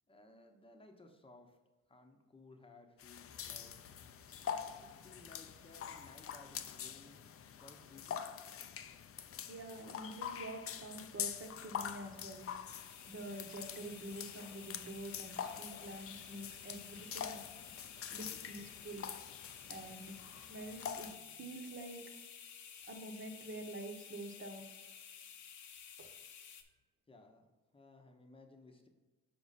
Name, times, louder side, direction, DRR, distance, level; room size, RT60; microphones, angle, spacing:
voice 1, 0.1-1.6 1.9-4.0 4.8-7.2 7.6-8.2 27.1-27.5 27.7-28.9, left 2 dB, 20° left, 5 dB, 1.0 m, -59 dB
sound 1, 3.0-21.2, left 8 dB, 50° left, 0.5 m, -45 dB
voice 2, 9.5-12.5 13.1-17.4 18.1-19.1 19.7-22.2 22.9-24.7 26.0-26.1, right 1 dB, 40° right, 4 dB, 1.1 m, -47 dB
sound 2, 12.7-26.6, left 8 dB, 80° left, 0.8 m, -53 dB
6.1 x 4.9 x 4.1 m, 1.2 s
cardioid pair, 90°, 30 cm